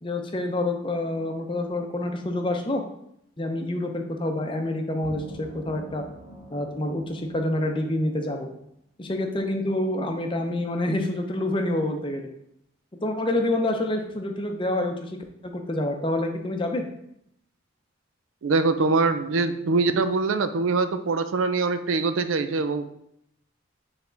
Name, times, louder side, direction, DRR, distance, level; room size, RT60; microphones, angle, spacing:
voice 1, 0.0-2.8 3.4-6.0 6.5-8.5 9.0-12.3 13.0-15.1 15.4-16.8, left 1 dB, 25° left, 4 dB, 0.6 m, -27 dB
sound 1, 5.0-8.6, right 1 dB, 45° right, 2.1 m, -46 dB
voice 2, 18.4-22.8, right 3 dB, 85° right, 10 dB, 0.5 m, -23 dB
6.9 x 3.5 x 3.9 m, 0.76 s
head